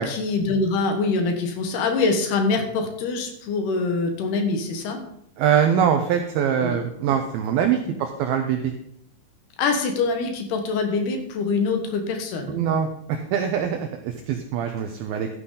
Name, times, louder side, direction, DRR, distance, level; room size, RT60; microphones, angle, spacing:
voice 1, 0.0-5.0 6.6-6.8 9.6-12.6, left 4 dB, 70° left, 5 dB, 3.0 m, -24 dB
voice 2, 5.4-8.7 12.5-15.3, right 8 dB, 85° right, 6 dB, 2.1 m, -23 dB
12.5 x 9.9 x 3.8 m, 0.74 s
omnidirectional pair, 5.3 m